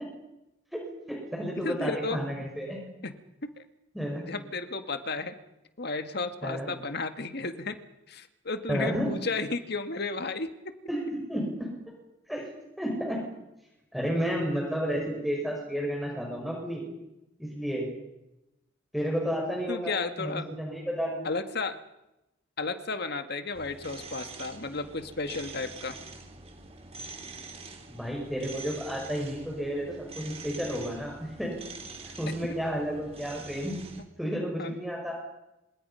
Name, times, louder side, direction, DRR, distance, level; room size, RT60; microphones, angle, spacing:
voice 1, 0.7-2.8 3.9-4.2 6.4-6.7 8.7-9.1 10.9-11.7 12.3-12.5 12.8-13.2 13.9-16.8 17.4-17.9 18.9-21.3 27.9-31.5 32.2-33.8 34.2-35.1, equal, ahead, -1 dB, 5.8 m, -31 dB
voice 2, 1.6-2.2 3.0-3.1 3.4-3.6 4.2-5.3 5.8-7.8 8.1-10.5 19.7-20.4 21.2-21.8 22.6-26.0 32.3-32.4 34.6-34.8, left 3 dB, 55° left, 8 dB, 1.9 m, -33 dB
sound 1, 23.5-34.0, right 3 dB, 30° right, 3.3 m, -45 dB
28.5 x 27.0 x 5.7 m, 0.92 s
head